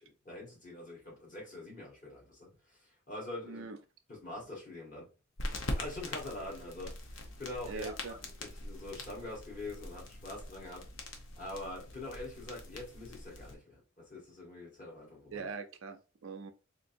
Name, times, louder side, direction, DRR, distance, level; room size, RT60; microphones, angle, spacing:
voice 1, 0.0-2.8 3.1-3.6 4.1-5.1 5.8-10.8 11.4-15.5, left 2 dB, 40° left, 1.6 m, -44 dB
voice 2, 3.4-3.8 7.7-8.1 15.3-16.5, right 4 dB, 80° right, 0.5 m, -42 dB
sound 1, 5.4-13.5, left 1 dB, 70° left, 0.7 m, -43 dB
3.7 x 2.7 x 2.5 m
head